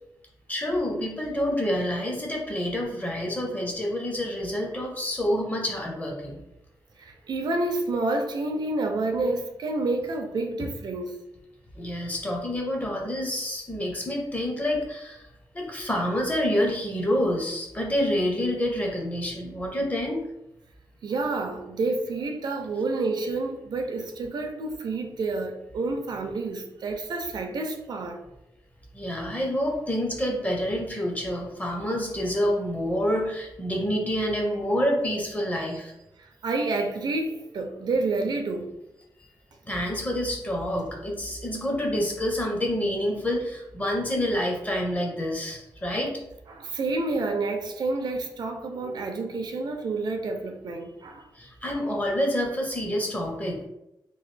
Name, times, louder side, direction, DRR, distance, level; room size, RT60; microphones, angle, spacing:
voice 1, 0.5-6.4 11.8-15.3 15.5-20.2 28.9-35.9 39.6-46.1 51.4-53.6, equal, 20° left, 0.6 m, -27 dB
voice 2, 7.0-11.2 21.0-28.2 36.2-38.7 46.5-51.3, right 3 dB, 65° right, 0.4 m, -29 dB
3.0 x 2.3 x 3.2 m
wide cardioid pair, 165°, 8 cm